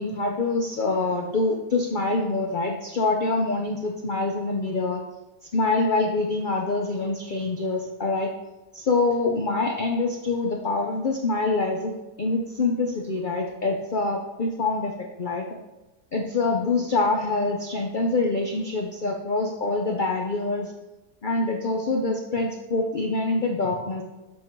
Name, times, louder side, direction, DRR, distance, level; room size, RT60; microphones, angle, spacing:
voice 1, 0.0-5.0 5.5-8.3 8.7-14.9 15.2-15.5 16.1-20.7 21.2-24.0, left 3 dB, 75° left, 1 dB, 0.4 m, -25 dB
7.5 x 3.8 x 4.4 m, 1.1 s
omnidirectional pair, 1.7 m